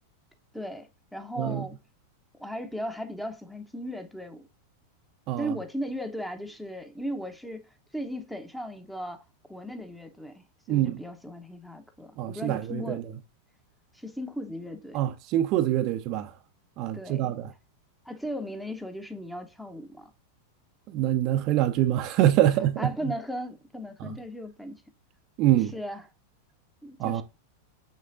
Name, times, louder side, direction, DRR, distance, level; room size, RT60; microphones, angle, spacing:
voice 1, 0.5-1.8 2.4-4.5 5.4-7.6 7.9-9.2 9.5-10.4 10.7-13.0 13.9-15.0 16.9-17.3 18.0-20.1 22.8-24.8 25.7-26.0 26.8-27.2, equal, ahead, 0.9 m, -36 dB
voice 2, 1.4-1.7 5.3-5.6 10.7-11.0 12.2-13.1 14.9-16.3 16.8-17.5 20.9-22.9 24.0-24.2 25.4-25.7 27.0-27.2, right 13 dB, 40° right, 0.6 m, -25 dB
6.5 x 6.4 x 2.6 m
figure-of-eight pair, 90°, 0 cm